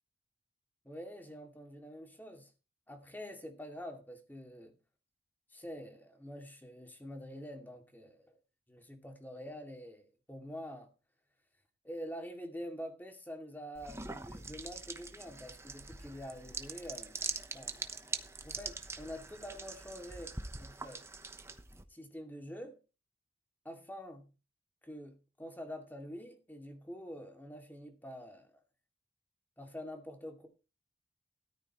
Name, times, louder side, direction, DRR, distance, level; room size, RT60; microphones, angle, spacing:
voice 1, 0.8-2.5 2.9-4.7 5.5-8.4 8.7-10.9 11.8-17.2 17.5-17.8 18.4-21.1 21.9-22.8 23.6-24.3 24.8-28.6 29.6-30.5, equal, 10° left, 2.5 m, -46 dB
sound 1, 13.7-21.8, right 3 dB, 15° right, 0.9 m, -43 dB
13.5 x 13.5 x 3.1 m
head